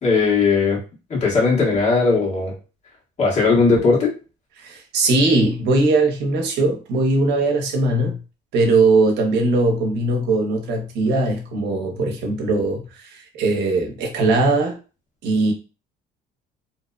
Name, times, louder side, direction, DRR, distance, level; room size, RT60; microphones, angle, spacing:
voice 1, 0.0-0.8 1.1-2.5 3.2-4.1, left 4 dB, 45° left, 1.4 m, -18 dB
voice 2, 4.6-8.2 8.5-12.9 13.3-14.8 15.2-15.5, right 2 dB, 80° right, 0.7 m, -19 dB
2.7 x 2.0 x 2.4 m
cardioid pair, 110°, 17 cm